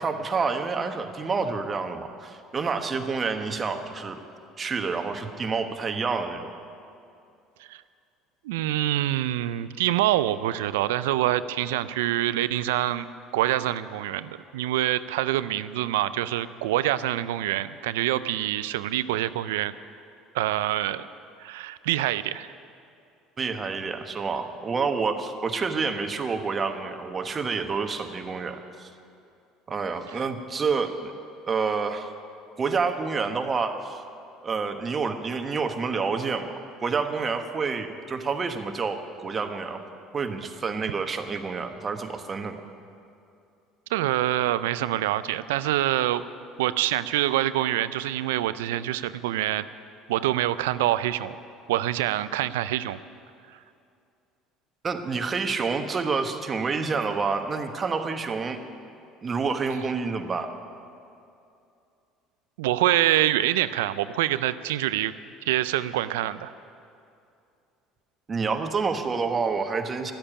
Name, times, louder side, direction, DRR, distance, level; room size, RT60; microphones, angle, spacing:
voice 1, 0.0-4.2 4.6-6.5 23.4-28.9 29.7-31.1 31.5-32.1 32.6-34.0 34.4-36.5 36.8-39.8 40.1-42.6 54.8-58.6 59.2-60.5 68.3-70.1, right 4 dB, 35° right, 6 dB, 1.2 m, -28 dB
voice 2, 8.4-13.1 13.3-19.7 20.3-21.1 21.4-22.5 30.1-30.3 43.9-46.2 46.6-49.7 50.1-51.3 51.7-53.0 62.6-65.1 65.5-66.5, right 14 dB, 85° right, 15 dB, 0.4 m, -25 dB
12.0 x 8.8 x 9.9 m, 2.6 s
hypercardioid pair, 75°, 0 cm